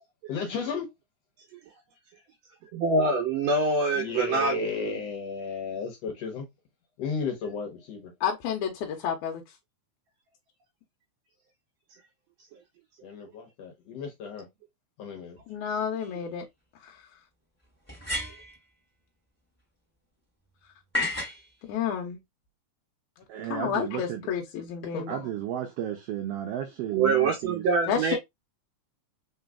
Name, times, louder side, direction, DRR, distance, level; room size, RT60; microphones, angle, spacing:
voice 1, 0.3-0.9 4.0-6.4 7.0-8.1 13.0-14.5 15.0-15.4 24.9-25.2, left 5 dB, 70° left, 1.9 m, -34 dB
voice 2, 2.7-5.0 26.9-28.2, right 3 dB, 70° right, 1.8 m, -25 dB
voice 3, 8.2-9.4 15.5-16.5 16.8-16.9 21.7-22.2 23.5-25.1 27.9-28.2, left 8 dB, 85° left, 2.0 m, -30 dB
sound 1, 16.0-16.1 17.9-18.6 20.9-21.4, left 2 dB, 5° left, 1.8 m, -31 dB
voice 4, 23.3-24.3 25.1-28.0, right 10 dB, 90° right, 1.3 m, -34 dB
4.0 x 3.9 x 2.2 m
omnidirectional pair, 3.4 m